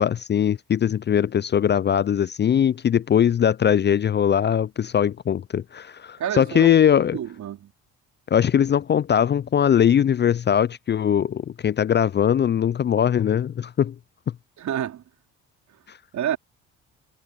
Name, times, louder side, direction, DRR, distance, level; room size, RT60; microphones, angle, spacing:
voice 1, 0.0-7.2 8.3-13.9, left 9 dB, 30° left, 0.5 m, -20 dB
voice 2, 6.2-6.8 7.1-7.7 14.6-15.0 16.1-16.4, right 10 dB, 55° right, 4.2 m, -28 dB
hypercardioid pair, 60°, 33 cm